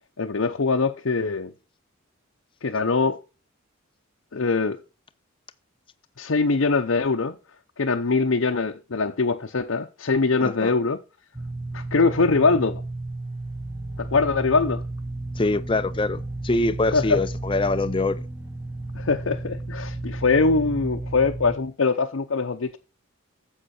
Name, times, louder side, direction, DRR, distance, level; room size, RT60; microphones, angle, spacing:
voice 1, 0.2-1.5 2.6-3.2 4.3-4.8 6.2-7.4 7.8-11.0 11.7-12.8 14.0-14.8 16.9-17.2 18.9-22.8, left 4 dB, 65° left, 0.7 m, -22 dB
voice 2, 10.4-10.7 15.4-18.3, left 2 dB, 25° left, 0.5 m, -24 dB
sound 1, 11.3-21.6, right 2 dB, 10° right, 0.8 m, -33 dB
10.0 x 7.4 x 4.3 m
head